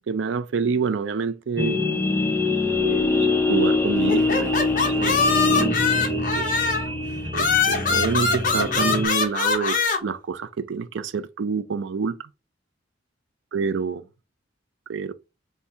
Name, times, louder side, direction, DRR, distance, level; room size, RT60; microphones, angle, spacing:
voice 1, 0.0-1.8 2.7-6.5 7.3-12.2 13.5-14.0 14.9-15.1, right 5 dB, 75° right, 0.4 m, -28 dB
sound 1, 1.6-9.1, left 3 dB, 10° left, 0.5 m, -24 dB
sound 2, 4.1-6.9 7.3-10.0, left 5 dB, 45° left, 0.8 m, -22 dB
5.5 x 2.0 x 3.4 m
head